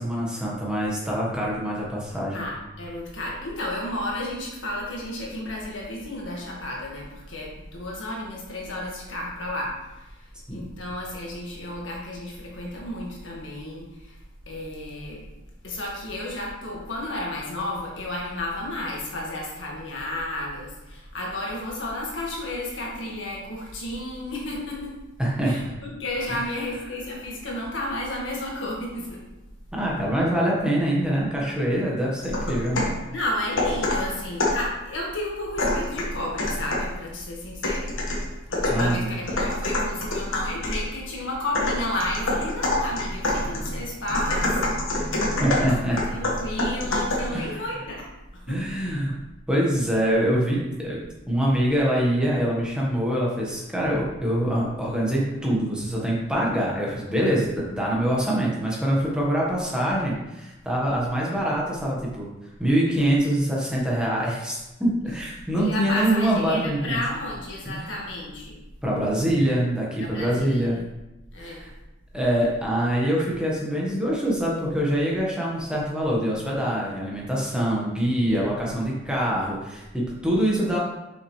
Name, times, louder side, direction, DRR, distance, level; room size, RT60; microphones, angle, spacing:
voice 1, 0.0-2.5 10.5-10.7 25.2-25.6 26.3-26.4 29.7-32.8 38.7-39.1 45.1-46.1 47.3-47.6 48.5-49.2 49.5-51.0 51.3-62.3 62.6-67.0 67.7-67.9 68.8-70.8 71.4-71.7 72.1-80.8, right 1 dB, 5° right, -4 dB, 1.3 m, -24 dB
voice 2, 2.3-14.2 14.4-15.2 15.6-24.9 25.4-29.2 33.1-37.9 38.5-44.8 45.5-48.1 48.5-48.6 65.5-68.6 70.0-70.8 71.3-71.7 78.2-78.5, left 1 dB, 70° left, -3 dB, 1.8 m, -32 dB
sound 1, 32.2-33.0 33.6-34.7 35.6-37.0 37.6-40.9 41.5-47.4, left 1 dB, 85° left, 1.4 m, -26 dB
6.7 x 5.7 x 3.2 m, 0.99 s
head